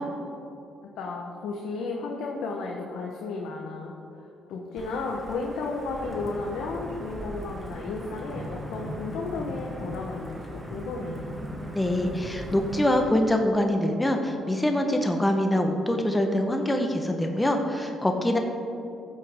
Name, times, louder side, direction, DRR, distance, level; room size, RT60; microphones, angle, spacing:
voice 1, 1.0-11.4, left 3 dB, 80° left, 0 dB, 1.0 m, -33 dB
Wind / Thunder / Rain, 4.8-13.0, equal, 10° right, 1.6 m, -38 dB
voice 2, 11.7-18.4, left 1 dB, 10° left, 3 dB, 1.0 m, -24 dB
13.5 x 7.5 x 3.6 m, 2.7 s
cardioid pair, 75°, 0 cm